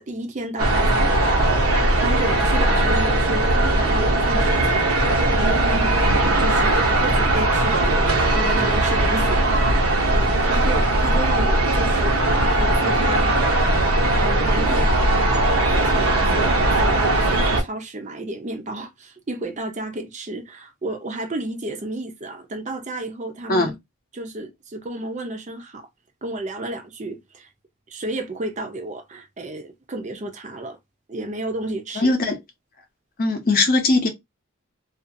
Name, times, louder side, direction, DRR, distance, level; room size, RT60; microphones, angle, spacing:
voice 1, 0.0-9.8 10.0-13.6 14.1-15.0 15.8-23.7 24.1-25.9 26.2-27.5 27.9-30.8 31.1-32.1, right 1 dB, 30° right, 0.5 m, -32 dB
sound 1, 0.6-17.6, right 2 dB, 80° right, 0.8 m, -19 dB
voice 2, 32.0-32.4 33.2-34.1, left 2 dB, 40° left, 0.6 m, -19 dB
2.5 x 2.3 x 2.5 m
head